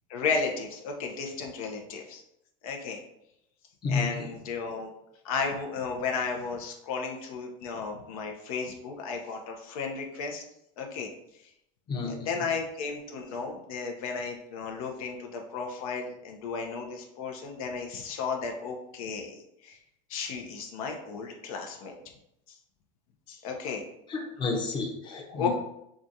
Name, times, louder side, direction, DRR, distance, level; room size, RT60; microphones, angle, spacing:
voice 1, 0.1-2.2 2.6-3.0 3.9-4.9 5.2-10.4 10.8-11.1 12.1-19.8 20.1-21.9 23.3-23.8 25.1-25.5, left 5 dB, 85° left, 2 dB, 0.7 m, -34 dB
voice 2, 3.8-4.3 11.9-12.4 24.1-25.5, left 4 dB, 25° left, 1 dB, 0.7 m, -31 dB
4.8 x 2.4 x 2.7 m, 0.80 s
supercardioid pair, 140°, 18 cm